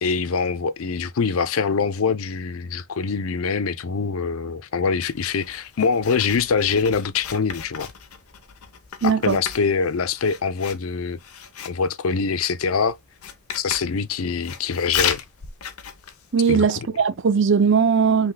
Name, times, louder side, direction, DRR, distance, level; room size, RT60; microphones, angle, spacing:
voice 1, 0.0-7.9 9.0-11.2 11.6-13.0 13.5-15.2 16.5-16.7, left 5 dB, 75° left, 0.5 m, -24 dB
Writing, 5.1-16.7, left 8 dB, 90° left, 0.9 m, -35 dB
voice 2, 9.0-9.4 16.3-18.3, right 6 dB, 55° right, 0.5 m, -19 dB
5.6 x 3.6 x 2.2 m
head